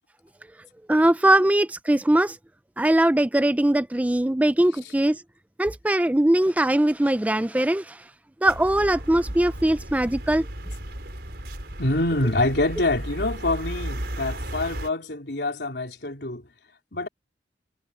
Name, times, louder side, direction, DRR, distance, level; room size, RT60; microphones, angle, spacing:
voice 1, 0.9-2.4 2.8-5.2 5.6-8.0 8.4-10.4, right 1 dB, 10° right, 0.4 m, -21 dB
sound 1, 8.4-14.9, right 1 dB, 65° right, 5.0 m, -35 dB
voice 2, 11.8-16.4 16.9-17.1, left 2 dB, 70° left, 3.7 m, -26 dB
head